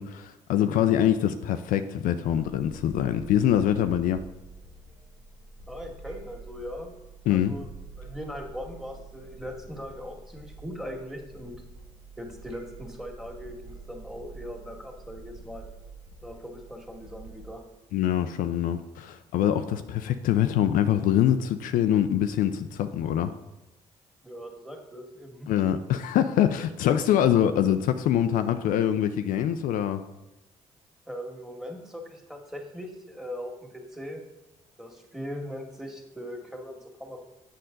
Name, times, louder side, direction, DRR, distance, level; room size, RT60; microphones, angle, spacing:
voice 1, 0.0-4.2 7.3-7.5 17.9-23.3 25.5-30.0, left 10 dB, 65° left, 10 dB, 0.5 m, -24 dB
sound 1, 2.2-17.5, right 3 dB, 80° right, 2.2 m, -47 dB
voice 2, 5.7-6.9 7.3-7.7 8.0-11.5 12.2-15.7 16.2-17.6 24.2-25.5 31.1-34.2 34.8-37.2, equal, ahead, 1 dB, 2.0 m, -40 dB
7.8 x 6.3 x 3.9 m, 0.96 s
hypercardioid pair, 50°, 15 cm